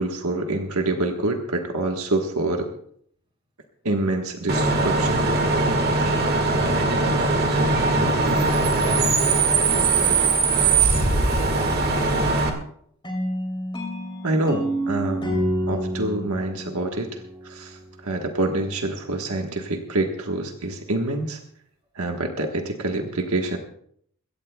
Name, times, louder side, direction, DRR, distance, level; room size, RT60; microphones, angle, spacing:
voice 1, 0.0-2.7 3.8-5.3 6.0-6.1 14.2-21.4 21.9-23.6, right 2 dB, 80° right, 3 dB, 1.4 m, -26 dB
Bus / Idling / Screech, 4.5-12.5, right 3 dB, 45° right, 1.9 m, -20 dB
voice 2, 6.7-11.2, left 1 dB, 25° right, 0 dB, 4.7 m, -39 dB
sound 1, 13.0-17.9, equal, 20° left, 2.9 m, -29 dB
22.0 x 17.0 x 2.3 m, 0.65 s
head